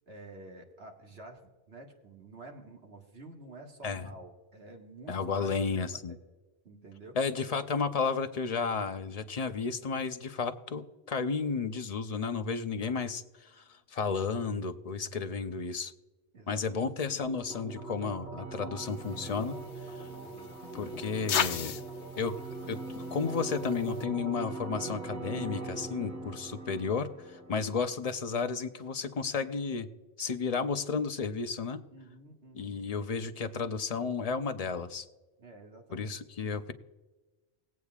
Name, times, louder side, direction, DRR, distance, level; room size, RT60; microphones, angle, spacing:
voice 1, 0.1-6.0 6.6-7.2 16.3-16.8 20.1-20.5 31.9-32.9 35.4-36.1, right 2 dB, 70° right, 1 dB, 1.9 m, -50 dB
voice 2, 5.1-6.1 7.2-15.9 16.5-19.6 19.8-20.1 20.7-21.8 22.2-22.4 22.7-29.9 30.2-31.8 32.5-35.1 35.9-36.7, left 5 dB, 40° left, 8 dB, 0.7 m, -33 dB
sound 1, 17.0-28.0, right 2 dB, 45° right, 1.6 m, -41 dB
sound 2, 18.9-24.0, left 8 dB, 90° left, 0.9 m, -37 dB
20.0 x 8.3 x 2.4 m, 1.2 s
omnidirectional pair, 1.1 m